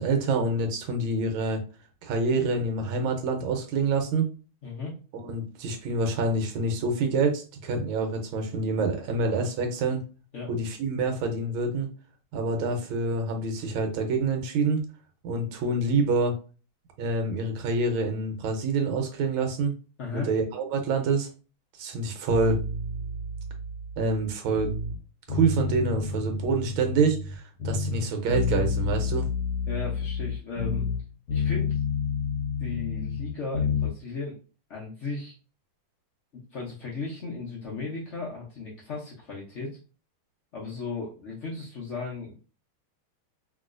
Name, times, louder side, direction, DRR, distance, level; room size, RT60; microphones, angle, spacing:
voice 1, 0.0-1.6 2.0-4.3 5.1-10.0 10.5-11.9 12.3-14.8 15.2-16.3 17.0-19.7 20.1-21.3 21.8-22.6 24.0-24.7 25.3-29.3, right 3 dB, 80° right, 4 dB, 1.5 m, -26 dB
voice 2, 4.6-4.9 10.3-10.5 20.0-20.3 29.7-30.9 31.3-31.8 32.6-34.4 34.7-35.3 36.3-39.8 40.5-42.3, left 4 dB, 80° left, -4 dB, 0.6 m, -36 dB
sound 1, 22.3-25.0 25.3-27.3 27.6-31.0 31.3-33.9, left 4 dB, 60° left, 1.1 m, -29 dB
3.0 x 2.8 x 2.4 m, 0.35 s
omnidirectional pair, 2.2 m